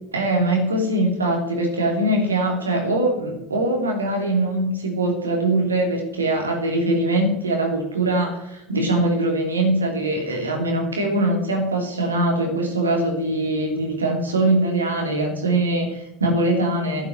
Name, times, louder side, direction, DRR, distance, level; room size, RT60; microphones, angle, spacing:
voice 1, 0.1-17.1, right 1 dB, 85° right, 1 dB, 2.9 m, -22 dB
11.0 x 8.8 x 7.7 m, 0.89 s
figure-of-eight pair, 70°, 0 cm